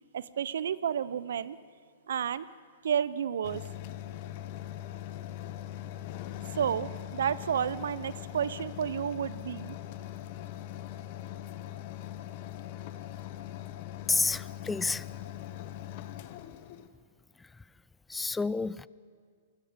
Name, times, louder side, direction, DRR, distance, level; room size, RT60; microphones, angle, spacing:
voice 1, 0.1-1.6 2.1-2.5 2.8-3.6 6.6-9.8, right 8 dB, 70° right, 0.7 m, -31 dB
sound 1, 3.4-16.9, left 12 dB, 50° left, 1.2 m, -41 dB
voice 2, 14.1-15.0 18.1-18.9, left 3 dB, 10° left, 0.5 m, -29 dB
28.0 x 21.0 x 5.3 m
hypercardioid pair, 120°, 0 cm